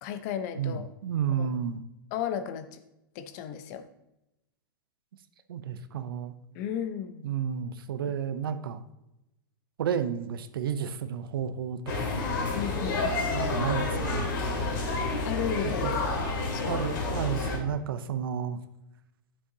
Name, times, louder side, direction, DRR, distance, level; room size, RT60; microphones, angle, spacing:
voice 1, 0.0-0.9 1.4-1.5 2.1-2.8 3.1-3.8 6.5-7.3 8.0-8.1 12.5-13.3 15.2-16.2 16.5-16.8, left 9 dB, 50° left, 10 dB, 0.9 m, -34 dB
voice 2, 0.6-1.8 5.5-6.3 7.2-8.8 9.8-12.2 13.3-14.3 15.6-15.9 16.6-18.6, right 8 dB, 75° right, 11 dB, 0.7 m, -31 dB
sound 1, 11.9-17.6, left 3 dB, 70° left, 2.8 m, -29 dB
9.8 x 6.9 x 2.8 m, 0.90 s
hypercardioid pair, 125°, 12 cm